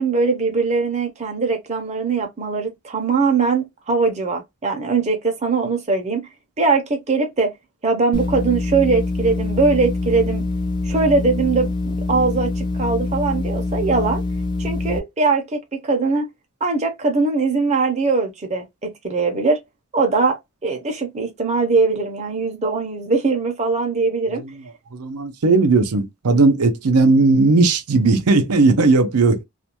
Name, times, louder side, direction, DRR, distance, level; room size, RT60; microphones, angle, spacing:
voice 1, 0.0-6.3 6.6-7.5 7.8-10.5 10.8-14.2 14.6-16.3 16.6-19.6 19.9-24.4, right 4 dB, 30° right, 0.6 m, -21 dB
sound 1, 8.1-15.0, left 3 dB, 20° left, 0.4 m, -24 dB
voice 2, 24.9-29.4, right 3 dB, 85° right, 0.6 m, -16 dB
2.4 x 2.2 x 2.8 m
head